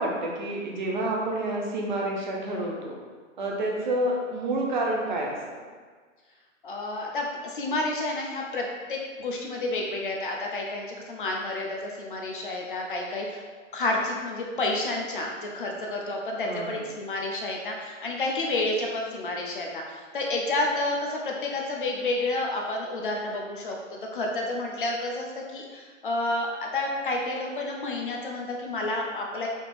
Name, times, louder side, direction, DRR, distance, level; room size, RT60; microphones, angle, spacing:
voice 1, 0.0-3.0 3.4-5.4 16.4-16.8, right 1 dB, 35° right, -1 dB, 0.6 m, -29 dB
voice 2, 6.6-13.4 13.7-23.8 24.1-29.5, left 2 dB, 40° left, 0 dB, 0.5 m, -30 dB
4.2 x 2.7 x 3.4 m, 1.5 s
hypercardioid pair, 160°, 39 cm